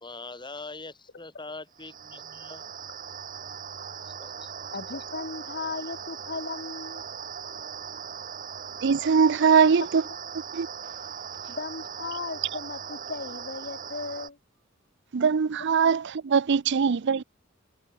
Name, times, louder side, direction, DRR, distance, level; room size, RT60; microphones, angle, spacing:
voice 1, 0.0-2.6 4.0-4.5, left 3 dB, 25° left, 3.0 m, -42 dB
sound 1, 1.7-14.3, right 7 dB, 40° right, 2.6 m, -39 dB
voice 2, 4.7-7.0 9.5-9.6 11.5-14.4, left 4 dB, 50° left, 1.7 m, -36 dB
voice 3, 8.8-10.0 10.5-10.7 15.1-17.2, right 6 dB, 60° right, 0.5 m, -21 dB
head